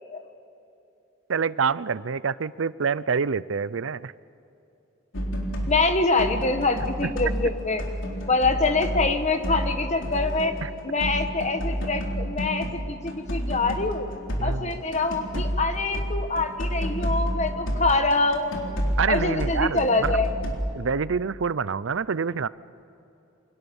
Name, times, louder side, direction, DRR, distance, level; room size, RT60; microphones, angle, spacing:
voice 1, 1.3-4.1 10.6-10.7 14.4-14.8 19.0-20.2 20.7-22.5, right 6 dB, 80° right, 18 dB, 0.6 m, -27 dB
sound 1, 5.1-12.8 13.1-20.6, equal, 75° left, 3.9 m, -30 dB
voice 2, 5.6-7.8 8.3-10.6 10.8-14.1 14.4-18.7 19.1-20.3, left 3 dB, 35° left, 7 dB, 1.6 m, -25 dB
sound 2, 6.8-16.4, equal, 20° right, 6.1 m, -52 dB
29.0 x 24.5 x 7.1 m, 2.8 s
head